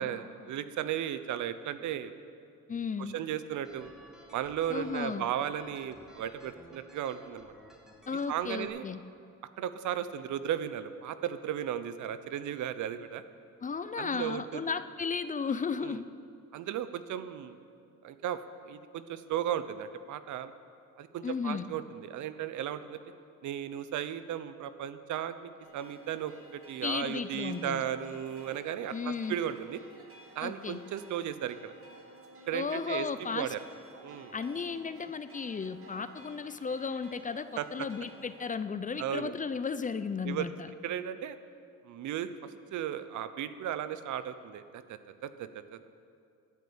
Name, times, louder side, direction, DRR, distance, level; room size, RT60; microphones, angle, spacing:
voice 1, 0.0-2.1 3.0-3.9 4.3-7.5 8.3-8.9 9.6-13.2 14.0-14.7 15.8-16.0 16.5-17.6 18.0-20.5 21.0-23.0 23.4-29.8 30.4-31.7 32.5-33.6 34.0-34.3 37.6-37.9 39.0-39.3 40.2-40.5 40.8-41.4 41.8-45.9, right 10 dB, 75° right, 12 dB, 0.8 m, -35 dB
voice 2, 2.7-3.1 4.7-5.3 8.1-9.0 13.6-16.0 21.2-21.7 26.8-27.8 28.9-29.4 30.4-30.8 32.5-33.5 34.3-40.7, left 5 dB, 25° left, 12 dB, 0.5 m, -34 dB
sound 1, 3.6-8.7, equal, ahead, 2.1 m, -56 dB
sound 2, 25.6-38.6, right 2 dB, 45° right, 1.9 m, -55 dB
11.0 x 8.3 x 8.7 m, 2.4 s
cardioid pair, 90°, 30 cm